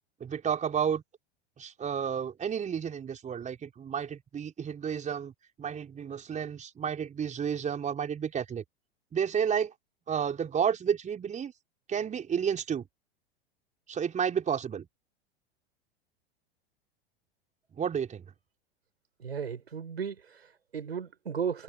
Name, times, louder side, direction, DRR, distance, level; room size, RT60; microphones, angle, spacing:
voice 1, 0.2-1.0 1.6-5.3 5.6-8.6 9.1-9.7 10.1-11.5 11.9-12.9 13.9-14.9 17.8-18.3, right 7 dB, 25° right, 5.0 m, -31 dB
voice 2, 19.2-21.6, right 7 dB, 80° right, 6.3 m, -35 dB
figure-of-eight pair, 90°, 31 cm